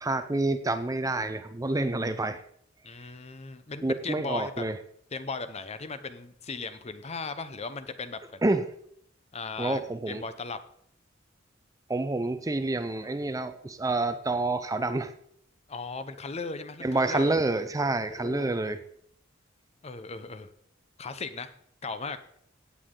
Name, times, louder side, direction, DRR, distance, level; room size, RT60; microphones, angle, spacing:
voice 1, 0.0-2.4 3.8-4.8 8.4-8.6 9.6-10.2 11.9-15.1 16.8-18.8, right 2 dB, 15° right, 10 dB, 0.6 m, -28 dB
voice 2, 2.8-4.6 5.1-8.4 9.3-9.8 10.1-10.6 15.7-17.3 18.0-18.5 19.8-20.5 21.0-21.5 21.8-22.2, left 4 dB, 35° left, 11 dB, 0.8 m, -37 dB
16.5 x 8.4 x 3.8 m, 0.67 s
head